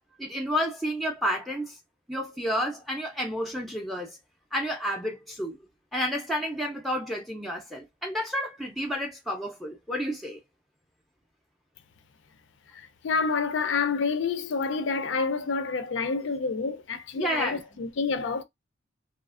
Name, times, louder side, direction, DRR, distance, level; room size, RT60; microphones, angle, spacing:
voice 1, 0.2-1.8 2.1-4.2 4.5-5.6 5.9-10.4 17.2-17.6, equal, ahead, 0.4 m, -30 dB
voice 2, 12.7-18.4, left 4 dB, 65° left, 0.4 m, -28 dB
2.8 x 2.4 x 2.3 m
head